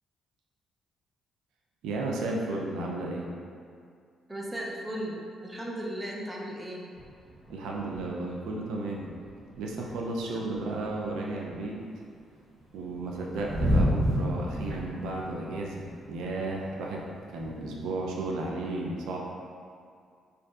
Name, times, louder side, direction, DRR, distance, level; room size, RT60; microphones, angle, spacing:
voice 1, 1.8-3.3 7.5-9.1 9.6-11.8 12.7-17.0 17.3-19.2, right 2 dB, 85° right, -1 dB, 0.3 m, -33 dB
voice 2, 4.3-6.8 10.3-10.5, right 1 dB, 15° right, -3 dB, 0.4 m, -36 dB
sound 1, 6.9-8.3 8.6-8.7 9.0-11.7 12.3-17.8, equal, 50° right, 0.7 m, -31 dB
2.7 x 2.4 x 2.3 m, 2.2 s
cardioid pair, 90°, 0 cm